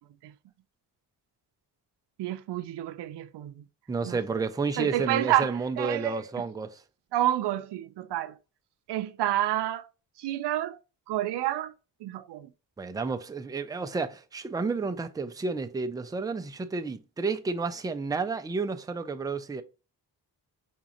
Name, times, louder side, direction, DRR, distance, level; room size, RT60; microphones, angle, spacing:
voice 1, 2.2-3.6 4.1-4.2 4.8-6.2 7.1-8.4 8.9-9.9 10.2-10.8 11.1-11.7 12.0-12.5, right 13 dB, 75° right, 0.5 m, -29 dB
voice 2, 3.9-6.8 12.8-19.6, right 4 dB, 10° right, 0.4 m, -31 dB
5.0 x 3.7 x 2.9 m
cardioid pair, 105°, 41 cm